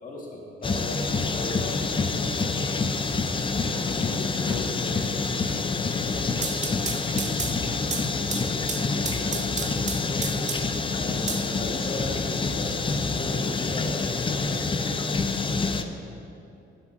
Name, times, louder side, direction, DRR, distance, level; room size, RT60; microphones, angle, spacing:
voice 1, 0.0-3.3 7.0-7.2 11.0-14.7, left 1 dB, 45° left, -3 dB, 1.7 m, -37 dB
sound 1, 0.6-15.8, left 4 dB, 25° left, 0.5 m, -27 dB
sound 2, 1.1-7.8 8.2-8.3, right 6 dB, 80° right, 0.7 m, -48 dB
voice 2, 3.5-6.6 8.8-9.7 15.5-15.8, left 3 dB, 80° left, -3 dB, 2.1 m, -42 dB
sound 3, 6.3-10.8 11.3-12.2, right 6 dB, 35° right, 0.7 m, -34 dB
15.5 x 8.2 x 2.6 m, 2.8 s
cardioid pair, 90°, 20 cm